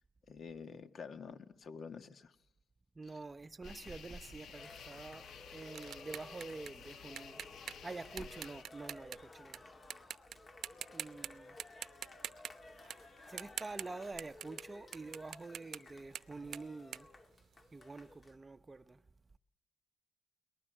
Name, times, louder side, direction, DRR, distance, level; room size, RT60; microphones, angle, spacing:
voice 1, 0.3-2.3 3.0-3.2, left 5 dB, 55° left, 1.7 m, -48 dB
voice 2, 2.9-7.4 7.8-9.7 10.9-11.6 13.3-17.1 17.7-19.0, right 3 dB, 20° right, 0.8 m, -47 dB
sound 1, 3.6-8.6, left 8 dB, 70° left, 1.3 m, -53 dB
Cheering, 4.5-18.4, left 2 dB, 35° left, 1.9 m, -56 dB
sound 2, 4.7-9.6 9.9-10.4 10.6-11.3 11.6-17.9, right 9 dB, 65° right, 0.8 m, -46 dB
22.5 x 20.0 x 7.8 m
cardioid pair, 90°, 0 cm